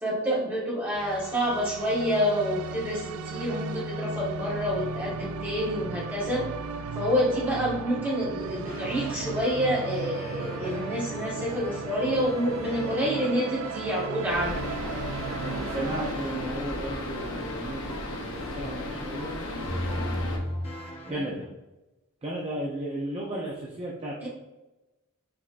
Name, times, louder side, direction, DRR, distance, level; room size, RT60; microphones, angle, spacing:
voice 1, 0.0-6.4 6.9-14.6 21.0-21.3 24.2-24.3, equal, 10° right, -7 dB, 1.5 m, -28 dB
sound 1, 0.9-16.1, right 5 dB, 85° right, 0.3 m, -36 dB
sound 2, 8.7-21.1, equal, 30° left, 1.0 m, -38 dB
sound 3, 14.3-20.4, left 2 dB, 80° left, 0.9 m, -35 dB
voice 2, 15.4-20.3 21.1-21.5 22.2-24.3, right 1 dB, 30° right, -3 dB, 0.5 m, -35 dB
5.8 x 3.4 x 2.5 m, 1.1 s
head